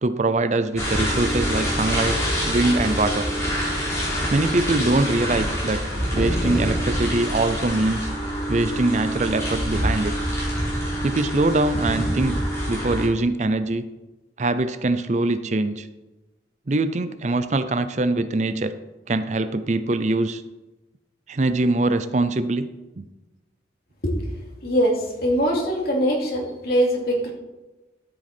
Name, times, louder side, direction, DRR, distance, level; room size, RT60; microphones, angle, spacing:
voice 1, 0.0-2.2 2.5-3.3 4.3-5.9 6.1-8.1 8.5-10.2 11.0-13.8 14.4-15.9 16.7-18.7 19.1-20.4 21.3-22.7 23.0-23.1, right 2 dB, 40° right, 12 dB, 0.5 m, -23 dB
sound 1, 0.7-13.1, equal, 15° left, 4.0 m, -25 dB
voice 2, 24.6-27.3, equal, 55° left, -1 dB, 2.6 m, -22 dB
12.5 x 7.8 x 4.4 m, 1.1 s
head